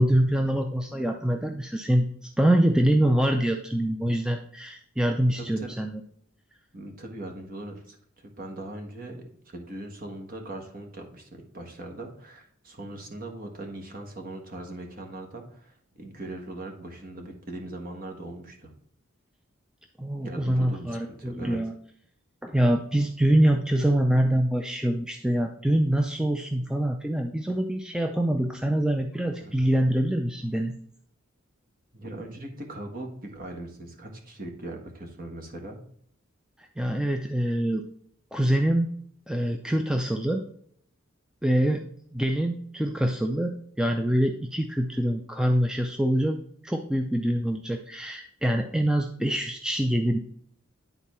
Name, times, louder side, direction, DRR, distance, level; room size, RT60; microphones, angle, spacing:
voice 1, 0.0-6.0 20.0-21.7 22.4-30.7 36.8-37.9 38.3-38.9 39.3-40.4 41.4-41.9 42.1-46.4 46.6-50.2, right 1 dB, 5° right, 4 dB, 0.4 m, -25 dB
voice 2, 5.1-5.8 6.7-18.7 20.2-21.6 29.4-29.7 31.9-35.8, right 1 dB, 45° right, 3 dB, 1.5 m, -40 dB
10.5 x 4.0 x 4.3 m, 0.64 s
head